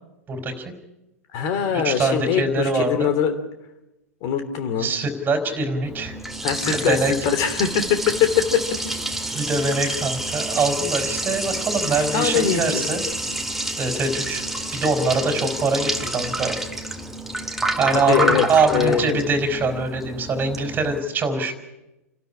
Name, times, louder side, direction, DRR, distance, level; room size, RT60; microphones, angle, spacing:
voice 1, 0.3-0.7 1.7-3.1 4.8-6.2 6.7-7.1 9.3-13.0 13.8-14.4 14.7-16.6 17.8-21.5, right 3 dB, 20° right, 7 dB, 4.4 m, -23 dB
voice 2, 1.3-3.4 4.2-4.9 6.4-8.6 11.9-12.9 17.9-19.2, left 8 dB, 40° left, 8 dB, 3.2 m, -22 dB
Liquid, 5.8-21.0, right 1 dB, 5° right, 2.0 m, -28 dB
29.0 x 12.5 x 9.9 m, 0.97 s
figure-of-eight pair, 100°, 8 cm